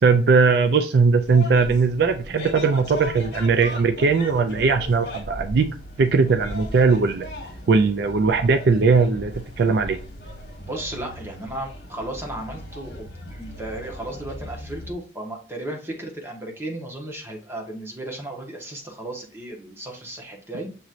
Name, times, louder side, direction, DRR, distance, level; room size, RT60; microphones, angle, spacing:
voice 1, 0.0-5.7 6.0-7.3 7.7-10.0, right 4 dB, 55° right, 8 dB, 0.4 m, -19 dB
sound 1, 1.2-14.9, left 1 dB, 55° left, 1.4 m, -38 dB
voice 2, 10.6-20.7, right 1 dB, 15° right, 1 dB, 1.1 m, -34 dB
6.8 x 3.0 x 2.5 m, 0.38 s
head